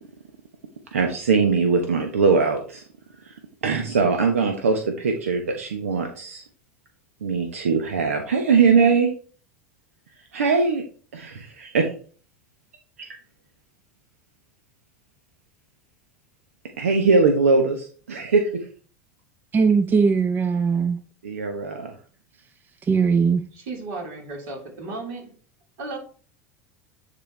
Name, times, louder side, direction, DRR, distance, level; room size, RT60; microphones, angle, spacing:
voice 1, 0.9-2.8 3.2-3.4 3.6-6.4 7.2-9.1 10.3-10.8 11.1-11.9 13.0-13.1 16.8-18.5 21.2-21.9, right 4 dB, 90° right, 4 dB, 1.0 m, -21 dB
voice 2, 19.5-21.0 22.8-23.4, right 5 dB, 25° right, 9 dB, 0.7 m, -19 dB
voice 3, 23.5-25.3 25.8-26.0, right 3 dB, 65° right, -1 dB, 3.9 m, -34 dB
10.0 x 4.4 x 3.3 m, 0.42 s
hypercardioid pair, 90°, 7 cm